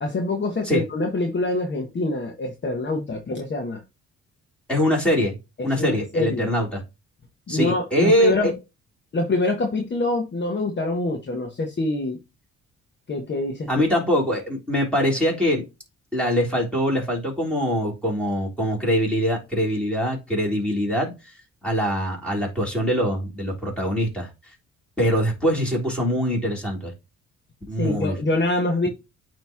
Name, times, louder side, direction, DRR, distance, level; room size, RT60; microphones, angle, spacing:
voice 1, 0.0-3.8 5.6-6.5 7.5-8.5 9.1-12.2 13.1-13.8 27.8-28.9, left 2 dB, 35° left, 1.3 m, -25 dB
voice 2, 4.7-5.4 5.6-6.8 7.5-8.5 13.7-15.6 16.1-21.1 21.6-24.3 25.0-26.9 27.7-28.2, equal, 5° left, 3.5 m, -23 dB
8.9 x 3.2 x 3.6 m
cardioid pair, 90°, 30 cm